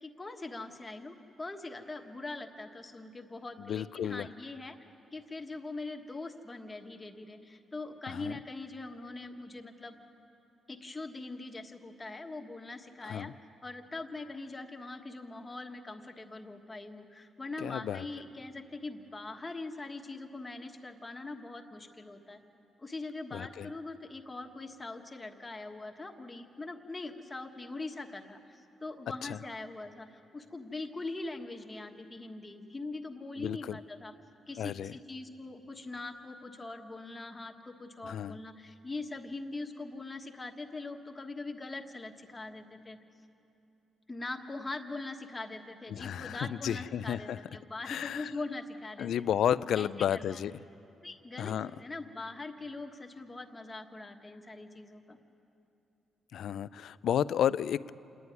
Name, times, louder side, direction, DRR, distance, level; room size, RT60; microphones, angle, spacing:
voice 1, 0.0-4.8 5.1-10.0 10.7-13.3 13.6-22.4 22.8-34.1 34.5-43.0 44.1-49.2 49.8-50.4 51.0-51.5 51.8-55.2, left 3 dB, 20° left, 4 dB, 1.3 m, -42 dB
voice 2, 3.6-4.3 8.1-8.4 13.0-13.3 17.6-18.0 23.3-23.7 29.2-29.4 33.4-33.8 34.6-34.9 38.0-38.4 45.9-47.4 47.9-48.3 49.0-50.5 51.4-51.7 56.3-57.9, left 9 dB, 70° left, 17 dB, 0.4 m, -32 dB
27.5 x 11.0 x 9.5 m, 2.9 s
cardioid pair, 130°, 0 cm